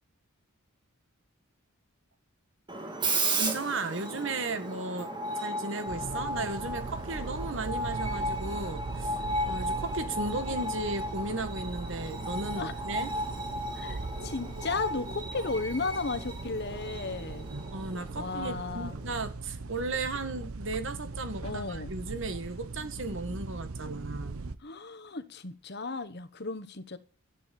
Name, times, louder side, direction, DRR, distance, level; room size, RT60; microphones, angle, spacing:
Screech, 2.7-19.3, right 1 dB, 20° right, 2.4 m, -35 dB
voice 1, 3.1-9.2 9.4-13.1 17.7-24.4, right 3 dB, 55° right, 1.7 m, -35 dB
sound 1, 5.9-24.6, right 3 dB, 75° right, 0.8 m, -40 dB
voice 2, 13.7-17.5 18.1-19.0 21.4-21.9 24.6-27.0, left 3 dB, 45° left, 1.2 m, -35 dB
12.0 x 9.3 x 8.5 m
head